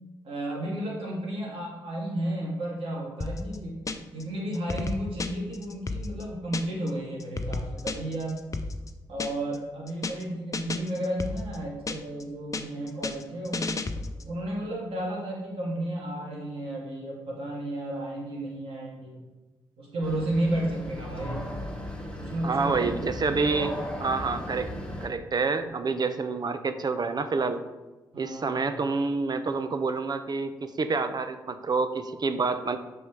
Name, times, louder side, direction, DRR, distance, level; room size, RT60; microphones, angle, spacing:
voice 1, 0.2-8.4 9.1-13.8 14.2-19.2 19.8-21.5 22.2-23.6 28.1-28.7, right 1 dB, 65° right, -3 dB, 2.5 m, -33 dB
sound 1, 3.2-4.2 4.5-6.9 7.2-9.6 9.9-10.2 10.5-12.2 12.5-14.3, left 3 dB, 30° left, 0.7 m, -33 dB
sound 2, 20.0-25.1, equal, 10° left, 1.6 m, -36 dB
voice 2, 22.4-24.7 25.0-27.6 28.2-32.8, right 4 dB, 40° right, 10 dB, 0.7 m, -28 dB
6.3 x 5.4 x 4.7 m, 1.2 s
hypercardioid pair, 45°, 10 cm